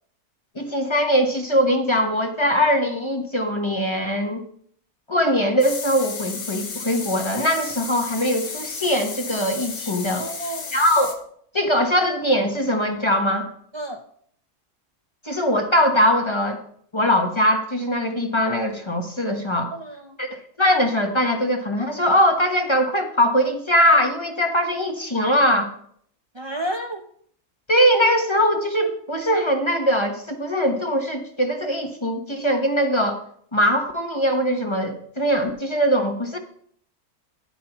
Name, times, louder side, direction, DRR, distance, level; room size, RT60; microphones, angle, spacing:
voice 1, 0.5-4.4 5.1-10.2 10.7-11.2 11.5-13.5 15.2-16.6 16.9-19.7 20.2-25.7 27.7-33.2 33.5-36.4, equal, 20° left, 4 dB, 1.0 m, -21 dB
sound 1, 5.6-11.2, left 5 dB, 70° left, 1.7 m, -33 dB
voice 2, 10.1-10.8 13.7-14.0 19.7-20.2 26.3-27.0, right 1 dB, 30° right, 3 dB, 0.5 m, -31 dB
11.5 x 10.0 x 3.0 m, 0.63 s
omnidirectional pair, 1.5 m